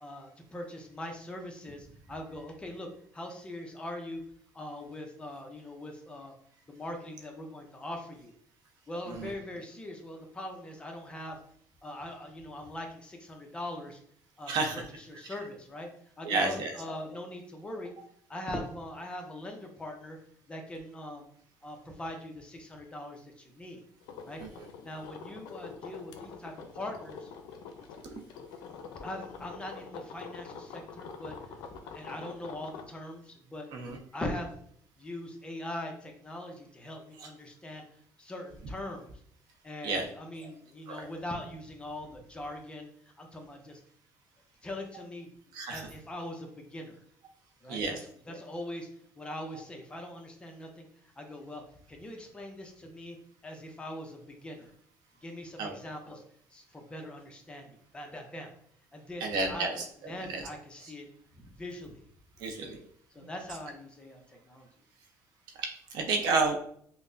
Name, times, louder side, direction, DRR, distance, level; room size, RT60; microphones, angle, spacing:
voice 1, 0.0-2.9 3.1-4.2 4.5-6.3 6.7-8.3 8.9-11.4 11.8-14.0 14.4-15.9 16.2-17.9 18.3-20.2 20.5-21.2 21.6-23.8 24.2-24.4 24.8-27.3 29.0-33.7 34.1-34.6 35.0-37.8 38.2-39.1 39.6-42.9 43.2-43.8 44.6-45.3 45.7-47.0 47.6-48.9 49.2-50.9 51.2-51.6 51.9-53.2 53.4-54.7 55.2-56.2 56.5-58.5 58.9-61.1 61.3-62.0 62.5-62.7 63.1-64.7, left 1 dB, 15° left, 3 dB, 0.5 m, -41 dB
voice 2, 14.5-14.8 16.2-16.7 24.4-24.7 33.7-34.0 37.2-37.3 39.8-40.1 40.9-41.0 45.5-45.8 47.7-48.0 55.6-55.8 59.2-60.4 62.4-62.8 63.2-63.3 65.6-66.6, right 3 dB, 75° right, 3 dB, 0.7 m, -31 dB
sound 1, 24.0-32.8, left 6 dB, 75° left, 0.5 m, -45 dB
5.5 x 2.1 x 2.6 m, 0.64 s
cardioid pair, 150°, 7 cm